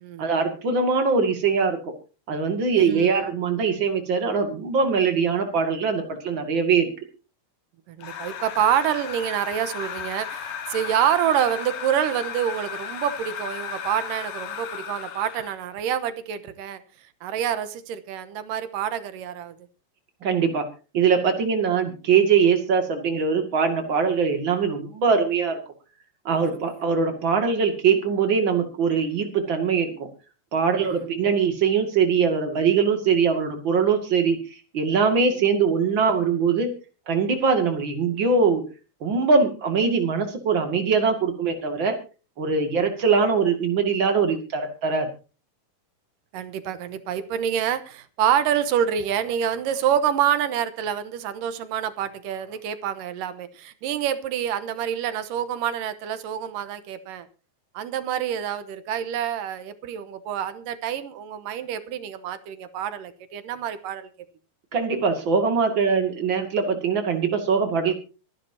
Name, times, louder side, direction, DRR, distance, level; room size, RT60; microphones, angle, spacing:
voice 1, 0.2-1.9 2.3-6.9 20.2-20.7 20.9-25.6 26.2-30.1 30.5-36.7 37.1-38.6 39.0-41.9 42.4-45.1 64.7-67.9, right 5 dB, 40° right, 2.7 m, -22 dB
voice 2, 2.8-3.2 7.9-16.8 17.2-19.6 26.4-26.5 30.8-31.1 46.3-57.3 57.7-64.1, right 9 dB, 80° right, 2.6 m, -27 dB
sound 1, 8.0-15.6, left 8 dB, 75° left, 3.2 m, -35 dB
25.0 x 11.0 x 2.8 m
omnidirectional pair, 4.0 m